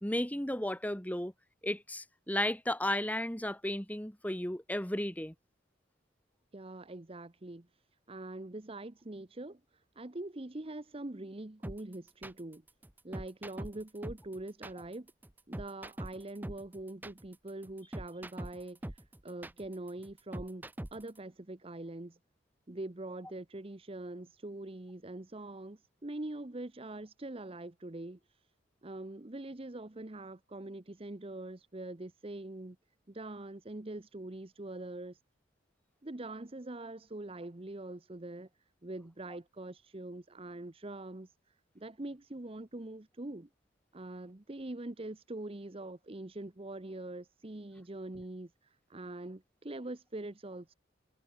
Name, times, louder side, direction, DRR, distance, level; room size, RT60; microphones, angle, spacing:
voice 1, 0.0-1.3 1.6-5.3, left 1 dB, 10° left, 1.8 m, -34 dB
voice 2, 6.5-7.7 8.1-12.6 13.0-15.1 15.5-20.6 20.9-22.2 22.7-28.2 28.8-32.8 33.1-35.2 36.0-38.5 38.8-43.5 43.9-50.7, right 2 dB, 30° right, 0.9 m, -43 dB
sound 1, 11.6-21.2, right 1 dB, 10° right, 0.5 m, -43 dB
head